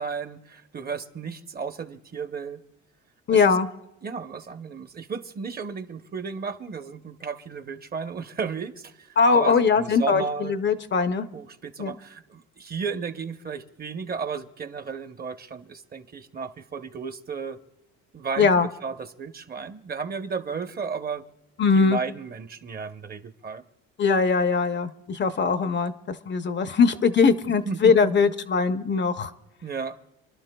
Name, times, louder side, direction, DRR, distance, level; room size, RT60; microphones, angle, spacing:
voice 1, 0.0-2.6 3.3-3.6 4.0-10.6 11.3-17.6 18.1-18.5 18.8-21.3 21.7-23.6 27.6-27.9 29.6-30.0, right 5 dB, 30° right, 0.8 m, -34 dB
voice 2, 3.3-3.7 9.2-11.3 11.8-11.9 18.4-18.7 21.6-22.0 24.0-29.3, left 5 dB, 35° left, 0.7 m, -21 dB
28.5 x 11.5 x 2.2 m
supercardioid pair, 85°, 32 cm